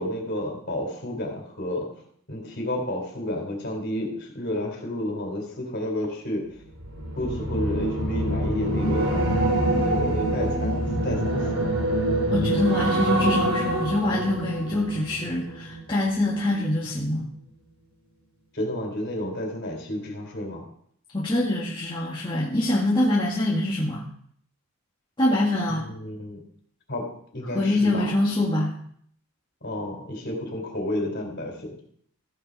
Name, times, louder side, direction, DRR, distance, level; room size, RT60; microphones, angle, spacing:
voice 1, 0.0-1.9 2.3-6.5 7.2-9.4 9.8-11.7 18.5-20.7 25.7-26.4 26.9-28.2 29.6-31.7, left 1 dB, 50° left, 1 dB, 3.8 m, -31 dB
sound 1, 6.7-16.1 16.5-16.8, right 1 dB, 65° right, 3.0 m, -25 dB
voice 2, 12.3-17.3 21.1-24.1 25.2-25.8 27.5-28.8, left 1 dB, 20° left, -5 dB, 1.6 m, -24 dB
15.0 x 10.5 x 4.1 m, 0.64 s
head